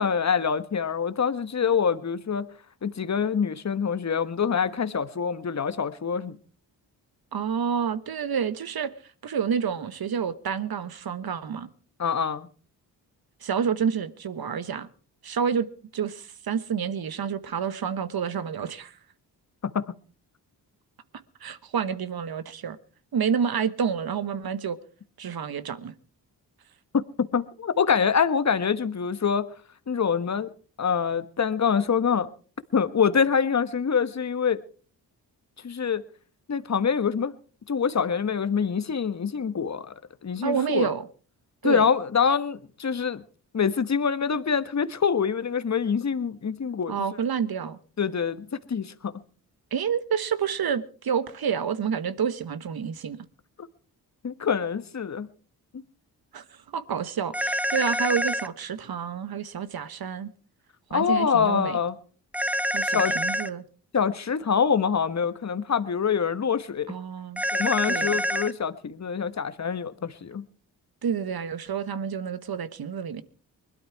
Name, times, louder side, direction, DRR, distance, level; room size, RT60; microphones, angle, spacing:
voice 1, 0.0-2.5 2.8-6.4 12.0-12.5 19.7-19.8 26.9-29.5 29.9-30.5 30.8-32.3 32.7-34.6 35.6-36.1 36.5-37.3 37.7-39.9 40.2-40.9 41.6-43.2 43.5-47.0 48.0-49.1 54.2-55.3 55.7-55.8 60.9-61.9 62.8-63.1 63.9-66.9 67.5-70.4, left 6 dB, 40° left, 1.4 m, -25 dB
voice 2, 7.3-8.9 9.2-11.7 13.4-14.9 15.2-18.9 21.4-22.8 23.1-24.8 25.2-25.9 40.4-41.0 41.6-41.8 46.9-47.8 49.7-53.2 56.3-56.4 56.7-60.3 60.9-61.8 62.7-63.6 66.9-67.4 67.9-68.2 71.0-73.2, right 7 dB, 55° right, 1.3 m, -29 dB
sound 1, 57.3-58.5 62.3-63.5 67.4-68.5, equal, 5° right, 0.8 m, -26 dB
21.0 x 12.5 x 4.7 m
supercardioid pair, 45°, 44 cm